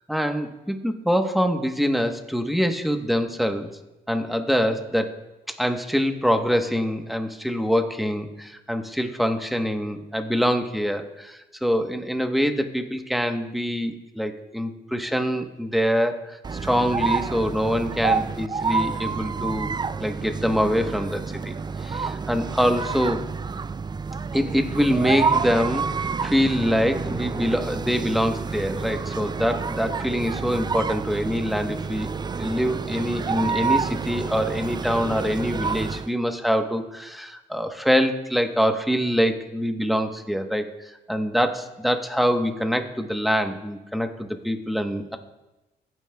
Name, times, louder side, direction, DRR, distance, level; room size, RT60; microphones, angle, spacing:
voice 1, 0.1-3.7 4.1-5.2 5.5-19.7 20.0-21.5 21.8-23.2 24.3-32.1 32.4-45.2, equal, ahead, 6 dB, 1.1 m, -24 dB
sound 1, 16.4-36.1, right 5 dB, 25° right, 0.3 m, -28 dB
15.5 x 9.5 x 2.3 m, 1.0 s
supercardioid pair, 60°, 19 cm